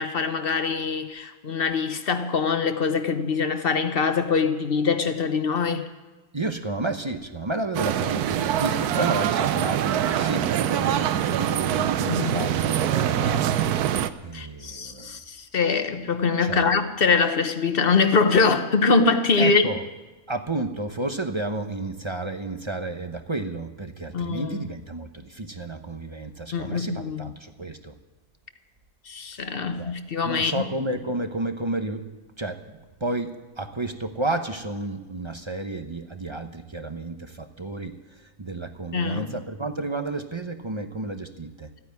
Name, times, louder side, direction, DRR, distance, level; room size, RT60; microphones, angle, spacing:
voice 1, 0.0-5.8 12.1-12.5 14.3-19.6 24.1-24.6 26.5-27.3 29.1-30.6 38.9-39.3, left 4 dB, 45° left, 1.0 m, -23 dB
voice 2, 6.3-13.4 14.2-15.2 16.4-16.7 19.4-19.8 20.3-27.9 29.8-29.9 30.2-32.1 32.4-41.7, right 2 dB, 30° right, 0.6 m, -31 dB
sound 1, 7.7-14.1, right 10 dB, 80° right, 1.2 m, -24 dB
15.0 x 9.7 x 9.5 m
omnidirectional pair, 1.6 m